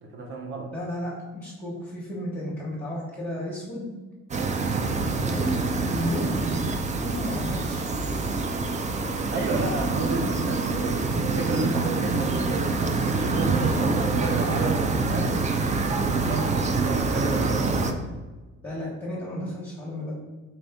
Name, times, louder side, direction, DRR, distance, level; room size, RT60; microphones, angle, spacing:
voice 1, 0.0-0.7 4.9-5.1 9.3-15.4 16.0-17.8, right 2 dB, 40° right, 1 dB, 0.8 m, -32 dB
voice 2, 0.7-3.9 5.2-5.6 5.9-6.5 7.0-7.9 13.5-14.5 14.7-14.9 18.6-20.1, equal, 10° left, -7 dB, 1.0 m, -33 dB
sound 1, 4.3-17.9, right 3 dB, 25° right, 0.4 m, -26 dB
4.4 x 2.6 x 3.5 m, 1.2 s
cardioid pair, 90°, 30 cm